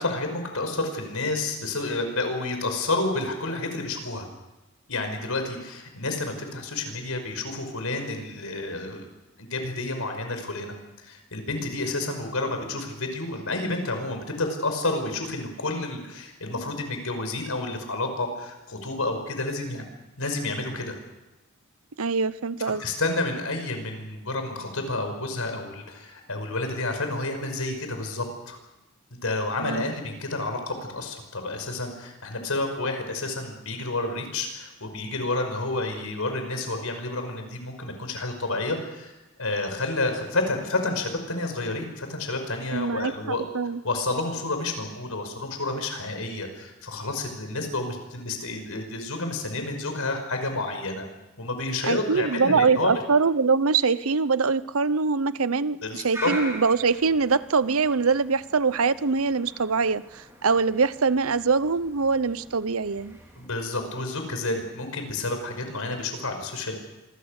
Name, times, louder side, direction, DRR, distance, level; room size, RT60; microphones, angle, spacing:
voice 1, 0.0-4.3 4.9-9.1 9.4-19.8 20.2-21.0 22.8-28.6 29.2-39.1 39.4-43.4 43.8-51.1 51.4-52.9 55.8-56.3 63.4-66.8, left 2 dB, 90° left, 6 dB, 5.6 m, -30 dB
voice 2, 22.0-22.8 29.6-29.9 42.7-43.8 51.9-63.2, right 4 dB, 85° right, 16 dB, 0.8 m, -23 dB
sound 1, 56.1-63.5, right 1 dB, 10° right, 4.0 m, -42 dB
26.5 x 22.5 x 6.6 m, 1.0 s
head